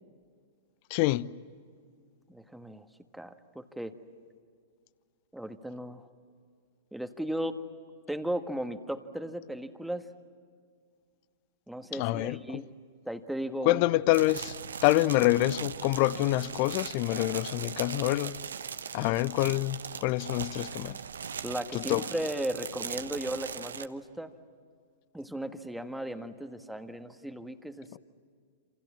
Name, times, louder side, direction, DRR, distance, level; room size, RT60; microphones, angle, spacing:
voice 1, 0.9-1.3 11.9-12.6 13.6-14.6 14.8-18.4 18.9-21.0 21.7-22.1 27.9-28.0, left 18 dB, 45° left, 0.7 m, -26 dB
voice 2, 2.3-2.9 3.1-3.9 5.3-6.1 6.9-7.6 8.1-10.0 11.7-12.7 13.0-13.8 19.0-19.2 21.4-24.3 25.1-27.9, right 1 dB, ahead, 1.6 m, -36 dB
sound 1, 14.1-23.9, right 6 dB, 75° right, 1.0 m, -39 dB
28.5 x 28.0 x 7.4 m
figure-of-eight pair, 105°, 0 cm